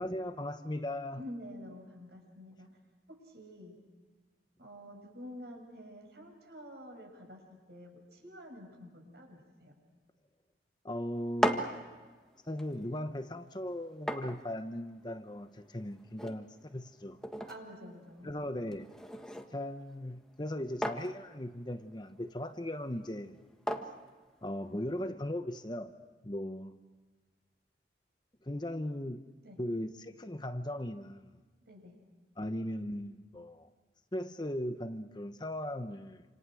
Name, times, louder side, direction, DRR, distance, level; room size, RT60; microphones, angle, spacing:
voice 1, 0.0-1.2 10.8-11.7 12.5-17.2 18.2-18.9 19.5-23.4 24.4-25.9 26.2-26.8 28.5-29.2 29.6-31.3 32.4-33.7 34.1-36.2, left 1 dB, 25° left, 1.0 m, -38 dB
voice 2, 1.2-2.7 3.1-3.8 4.6-9.7 17.5-18.3 29.4-29.6 31.6-32.0, equal, 60° right, 6.8 m, -49 dB
sound 1, 11.1-25.0, equal, 5° left, 1.6 m, -40 dB
28.5 x 27.5 x 6.4 m
head